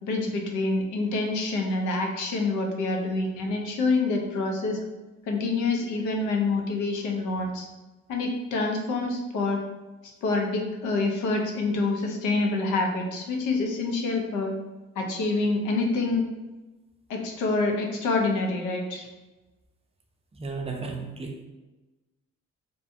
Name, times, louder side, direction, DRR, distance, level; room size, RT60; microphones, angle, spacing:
voice 1, 0.0-4.8 5.3-7.7 8.1-9.6 10.2-14.5 15.0-16.2 17.1-19.1, left 3 dB, 85° left, 2 dB, 0.6 m, -26 dB
voice 2, 20.3-21.4, right 4 dB, 20° right, 1 dB, 0.5 m, -34 dB
2.7 x 2.2 x 2.6 m, 1.1 s
cardioid pair, 90°, 30 cm